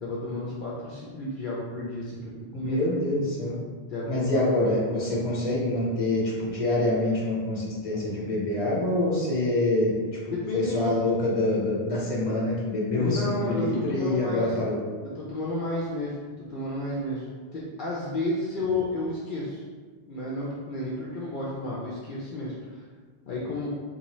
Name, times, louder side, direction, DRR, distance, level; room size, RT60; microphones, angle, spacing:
voice 1, 0.0-3.0 3.9-4.3 5.0-5.2 10.3-10.9 13.0-14.5 15.2-19.6 20.1-22.8 23.3-23.7, left 1 dB, 60° left, -5 dB, 0.7 m, -32 dB
voice 2, 2.5-3.6 4.1-10.0 10.2-14.8, left 1 dB, 35° left, -5 dB, 0.9 m, -26 dB
3.7 x 2.7 x 3.0 m, 1.5 s
omnidirectional pair, 1.1 m